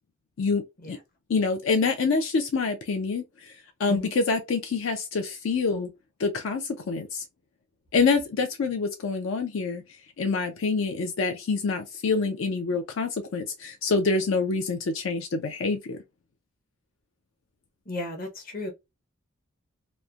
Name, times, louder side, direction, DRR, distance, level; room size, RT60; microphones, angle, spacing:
voice 1, 0.4-1.0 1.3-5.9 6.2-7.2 7.9-9.8 10.2-16.0, left 4 dB, 60° left, 0.4 m, -26 dB
voice 2, 17.9-18.7, left 1 dB, 40° left, 0.8 m, -34 dB
3.0 x 2.1 x 2.3 m
head